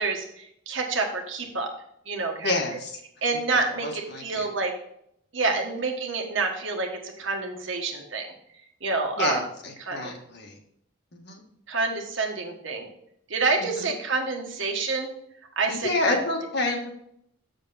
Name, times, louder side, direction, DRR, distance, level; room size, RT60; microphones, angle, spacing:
voice 1, 0.0-1.7 2.1-2.6 3.2-4.7 5.3-8.2 8.8-9.4 9.8-10.1 11.7-12.9 13.3-15.1 15.5-16.2, right 3 dB, 60° right, 2 dB, 1.5 m, -28 dB
voice 2, 2.4-2.9 3.5-4.5 5.5-5.8 9.2-10.6 11.1-11.4 13.7-13.9 15.7-16.9, left 2 dB, 50° left, 2 dB, 1.6 m, -29 dB
7.8 x 6.7 x 4.1 m, 0.71 s
head